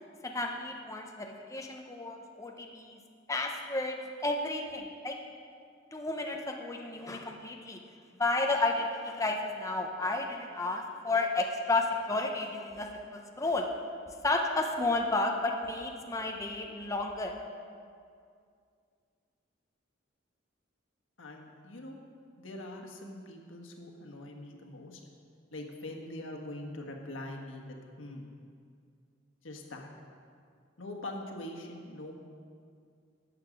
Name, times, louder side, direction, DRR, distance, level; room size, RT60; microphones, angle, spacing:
voice 1, 0.2-3.0 3.3-4.0 4.2-5.2 5.9-7.8 8.2-13.7 14.2-17.3, left 2 dB, 15° left, 2 dB, 0.7 m, -32 dB
voice 2, 21.2-22.0 22.4-25.0 25.5-28.3 29.4-29.9 30.8-32.1, left 1 dB, 85° left, 2 dB, 1.4 m, -43 dB
12.5 x 7.9 x 5.1 m, 2.3 s
head